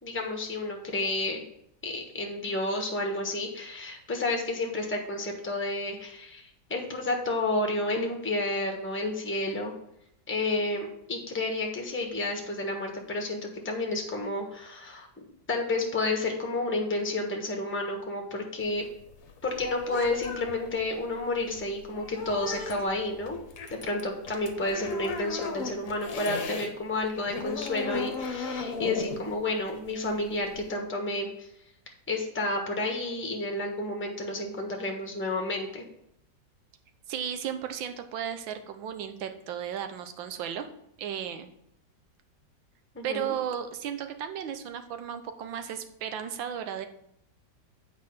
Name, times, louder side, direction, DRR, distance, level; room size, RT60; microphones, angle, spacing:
voice 1, 0.0-1.4 1.8-9.7 10.3-18.8 19.4-23.4 23.8-31.5 32.1-35.8 42.9-43.3, left 2 dB, 10° left, 2 dB, 1.0 m, -31 dB
sound 1, 18.6-26.7 27.0-30.8, left 4 dB, 55° left, 1.1 m, -37 dB
voice 2, 37.1-40.7 41.0-41.5 43.0-46.9, right 9 dB, 90° right, 8 dB, 1.6 m, -34 dB
8.3 x 4.7 x 5.7 m, 0.76 s
omnidirectional pair, 2.0 m